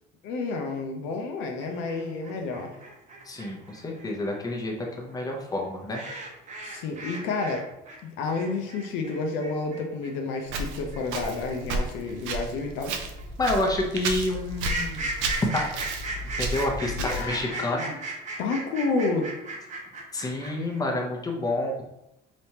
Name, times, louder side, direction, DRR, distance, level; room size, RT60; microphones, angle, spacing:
voice 1, 0.2-2.8 6.6-7.6 8.0-13.0 17.0-18.0 18.4-19.3, left 3 dB, 75° left, 2 dB, 0.6 m, -30 dB
sound 1, 1.6-7.6 7.8-20.8, right 2 dB, 40° right, 0.9 m, -37 dB
voice 2, 3.2-6.0 13.4-15.1 15.5-15.7 16.4-17.9 20.1-21.8, left 2 dB, 20° left, 0 dB, 0.7 m, -29 dB
Walk footsteps, 10.5-17.5, right 2 dB, 80° right, 0.5 m, -33 dB
3.4 x 3.0 x 2.8 m, 0.84 s
cardioid pair, 105°, 20 cm